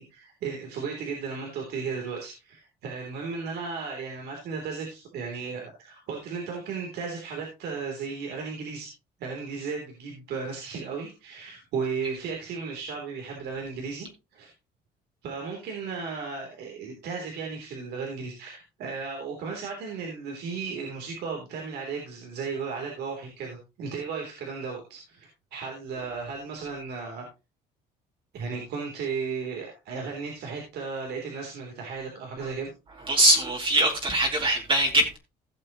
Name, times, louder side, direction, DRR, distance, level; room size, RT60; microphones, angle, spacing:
voice 1, 0.0-8.9 9.2-14.1 14.3-14.5 15.2-27.3 28.3-32.7, right 5 dB, 75° right, 3.3 m, -35 dB
voice 2, 33.1-35.2, right 1 dB, 30° right, 2.6 m, -22 dB
16.5 x 6.8 x 3.0 m
cardioid pair, 110°, 17 cm